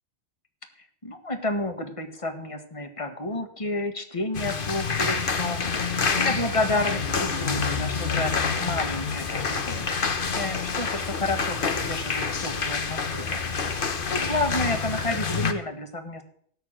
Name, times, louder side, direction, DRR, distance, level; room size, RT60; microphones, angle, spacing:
voice 1, 1.0-13.4 13.8-16.2, left 2 dB, 25° left, 6 dB, 1.7 m, -30 dB
sound 1, 4.3-15.5, left 5 dB, 50° left, 1.2 m, -27 dB
16.0 x 6.5 x 8.9 m, 0.62 s
omnidirectional pair, 1.2 m